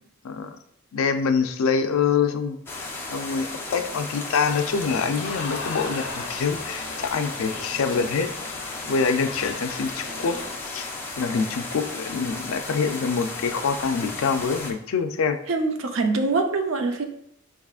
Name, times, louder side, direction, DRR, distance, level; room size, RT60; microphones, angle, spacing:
voice 1, 0.2-0.6 0.9-2.6 3.1-8.3 8.6-10.9 11.2-15.4, left 5 dB, 90° left, 8 dB, 0.4 m, -25 dB
sound 1, 2.7-14.7, left 3 dB, 10° left, 0.6 m, -35 dB
sound 2, 4.5-10.6, left 3 dB, 65° left, 0.9 m, -38 dB
voice 2, 15.5-17.1, right 3 dB, 70° right, 5 dB, 0.5 m, -24 dB
4.8 x 3.5 x 2.4 m, 0.71 s
head